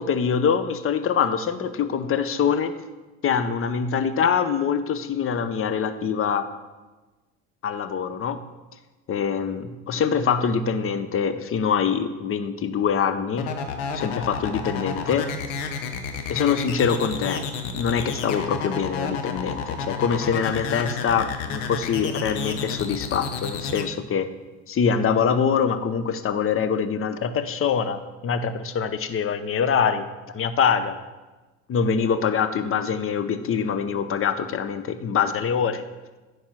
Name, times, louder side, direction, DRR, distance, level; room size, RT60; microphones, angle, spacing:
voice 1, 0.0-2.8 3.2-6.5 7.6-8.4 9.1-13.6 13.9-15.3 16.3-17.4 17.7-24.3 24.7-30.1 30.3-31.0 31.7-35.8, left 7 dB, 35° left, 11 dB, 0.8 m, -24 dB
sound 1, 13.4-23.8, left 6 dB, 75° left, 1.0 m, -30 dB
9.5 x 4.7 x 6.0 m, 1.2 s
hypercardioid pair, 65°, 37 cm